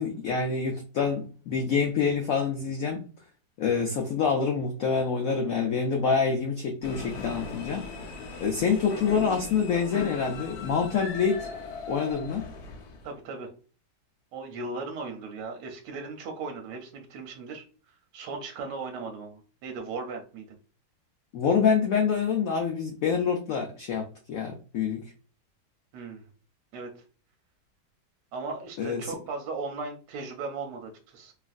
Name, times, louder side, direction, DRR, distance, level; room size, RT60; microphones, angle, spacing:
voice 1, 0.0-3.0 3.6-7.8 8.4-11.5 11.9-12.5 21.3-25.0 28.8-29.1, left 6 dB, 80° left, 2 dB, 0.7 m, -26 dB
sound 1, 6.8-13.1, left 4 dB, 65° left, 1.1 m, -39 dB
voice 2, 13.0-13.5 14.3-17.6 18.1-20.5 25.9-26.2 26.7-26.9 28.3-31.3, right 3 dB, 75° right, 3 dB, 1.1 m, -37 dB
3.0 x 2.4 x 2.4 m, 0.38 s
omnidirectional pair, 2.0 m